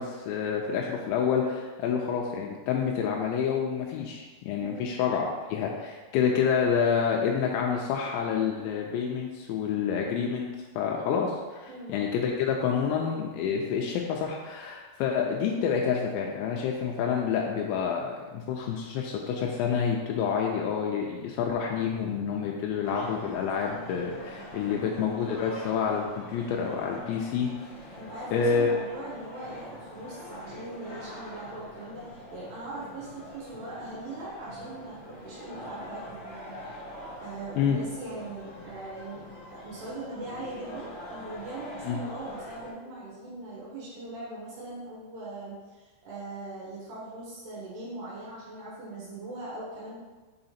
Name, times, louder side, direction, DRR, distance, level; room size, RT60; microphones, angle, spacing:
voice 1, 0.0-10.5 10.8-27.5 28.3-28.7 37.6-37.8 41.9-42.0, left 7 dB, 85° left, 0 dB, 2.8 m, -28 dB
voice 2, 4.6-5.0 11.7-12.0 24.7-24.9 28.0-36.5 37.2-50.0, right 2 dB, 70° right, -7 dB, 3.3 m, -40 dB
sound 1, 22.8-42.7, left 1 dB, 50° left, 1.4 m, -44 dB
7.0 x 3.8 x 4.2 m, 1.3 s
omnidirectional pair, 5.2 m